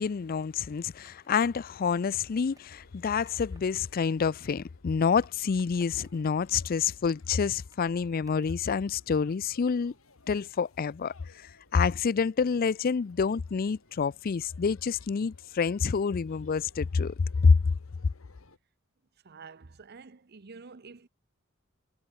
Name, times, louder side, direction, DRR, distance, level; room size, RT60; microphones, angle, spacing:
voice 1, 0.0-9.9 10.3-11.1 11.7-17.1 17.4-17.6, left 5 dB, 45° left, 0.4 m, -27 dB
Skateboard, 1.1-3.8 4.4-6.2 6.5-8.7, right 2 dB, 15° right, 6.1 m, -65 dB
sound 1, 1.8-18.6, left 2 dB, 85° left, 5.2 m, -60 dB
voice 2, 19.2-21.1, right 4 dB, 50° right, 0.8 m, -48 dB
head